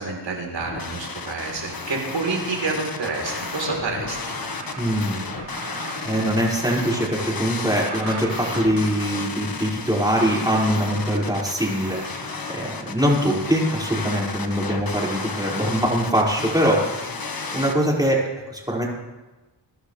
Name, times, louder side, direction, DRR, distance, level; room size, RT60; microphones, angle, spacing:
voice 1, 0.0-4.4, right 3 dB, 75° right, 0 dB, 3.9 m, -28 dB
sound 1, 0.6-17.7, left 4 dB, 50° left, 1.5 m, -33 dB
sound 2, 3.0-5.1 5.3-9.2 10.2-12.4 13.0-14.3, right 3 dB, 55° right, 3.6 m, -40 dB
voice 2, 4.8-17.1 17.5-18.9, equal, 10° right, -4 dB, 5.5 m, -23 dB
23.0 x 11.5 x 3.4 m, 1.1 s
cardioid pair, 60°, 45 cm